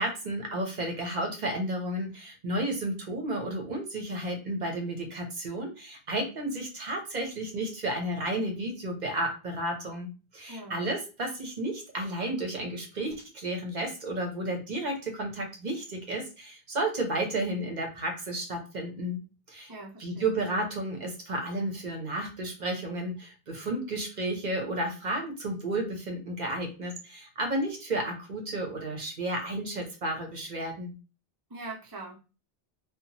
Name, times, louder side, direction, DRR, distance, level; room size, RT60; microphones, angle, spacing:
voice 1, 0.0-19.2 19.5-19.7 20.0-30.9, right 1 dB, 50° right, 2 dB, 0.8 m, -32 dB
voice 2, 10.5-10.8 19.7-20.3 31.5-32.2, right 2 dB, 30° right, 0 dB, 0.4 m, -42 dB
2.8 x 2.2 x 2.7 m, 0.32 s
omnidirectional pair, 1.0 m